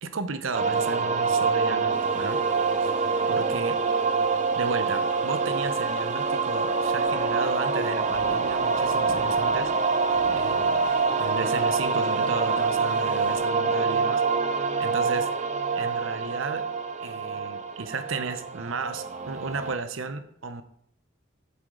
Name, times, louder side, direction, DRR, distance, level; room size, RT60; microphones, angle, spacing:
voice 1, 0.0-2.4 2.8-2.9 3.3-3.8 4.5-9.7 10.3-10.9 11.2-14.2 14.8-15.3 15.8-16.7 17.0-20.6, right 4 dB, 85° right, 0.8 m, -34 dB
sound 1, 0.5-19.8, right 4 dB, 35° right, 0.5 m, -26 dB
sound 2, 1.9-13.4, equal, 10° right, 1.9 m, -48 dB
7.9 x 7.7 x 3.9 m
head